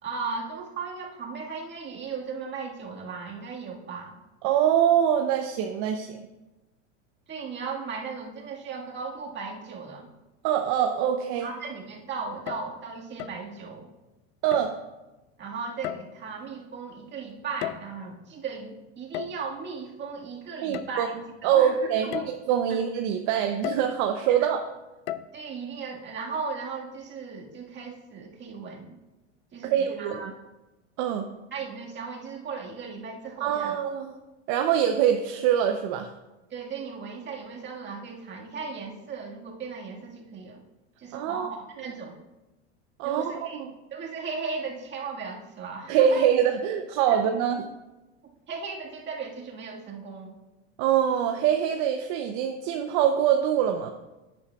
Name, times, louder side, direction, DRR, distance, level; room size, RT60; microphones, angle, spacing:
voice 1, 0.0-4.2 7.3-10.1 11.4-13.9 15.4-21.1 21.4-21.8 22.0-22.3 22.7-22.8 25.3-29.0 29.5-30.4 31.5-33.8 36.5-40.6 41.0-42.2 43.0-43.6 43.9-46.2 47.1-47.2 48.5-50.3, right 5 dB, 30° right, -1 dB, 1.8 m, -36 dB
voice 2, 4.4-6.3 10.4-11.5 14.4-14.7 20.6-21.1 21.4-24.6 29.6-30.3 31.0-31.3 33.4-34.1 34.5-36.1 41.1-41.5 43.0-43.7 45.9-47.6 50.8-53.9, right 9 dB, 50° right, 5 dB, 0.7 m, -24 dB
sound 1, 12.3-12.8 13.2-13.5 14.5-14.8 15.8-16.3 17.4-18.1 19.1-19.5 20.7-20.9 21.4-21.5 22.1-22.4 23.6-24.0 25.1-25.3, left 12 dB, 55° left, 0.5 m, -35 dB
11.0 x 8.9 x 2.4 m, 1.1 s
supercardioid pair, 120°, 36 cm